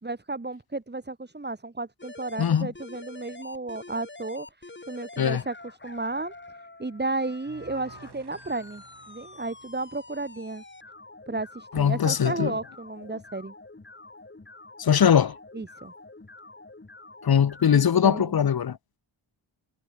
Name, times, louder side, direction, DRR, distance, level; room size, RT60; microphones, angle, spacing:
voice 1, 0.0-5.5 5.8-6.3 6.8-10.6 11.3-13.5 15.5-15.9 17.7-18.3, right 2 dB, 20° right, 2.1 m, -33 dB
sound 1, 2.0-17.8, left 2 dB, 20° left, 3.6 m, -47 dB
sound 2, 7.5-10.7, right 5 dB, 50° right, 6.7 m, -53 dB
voice 2, 11.7-12.5 14.8-15.3 17.2-18.8, left 8 dB, 45° left, 0.9 m, -21 dB
wide cardioid pair, 110°, 49 cm